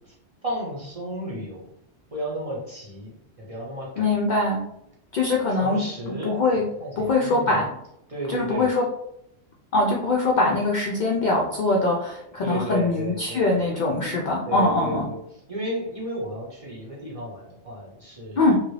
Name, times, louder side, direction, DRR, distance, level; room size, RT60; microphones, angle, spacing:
voice 1, 0.4-1.6 2.1-3.1 3.4-4.1 5.5-6.4 6.8-7.7 8.1-8.7 12.4-13.7 14.4-15.2 15.5-18.5, right 1 dB, 35° right, -4 dB, 0.7 m, -33 dB
voice 2, 4.0-4.6 5.1-6.7 7.0-7.6 8.3-8.8 9.7-15.1 18.4-18.6, left 2 dB, 60° left, -2 dB, 0.5 m, -22 dB
2.9 x 2.5 x 3.1 m, 0.78 s
omnidirectional pair, 1.2 m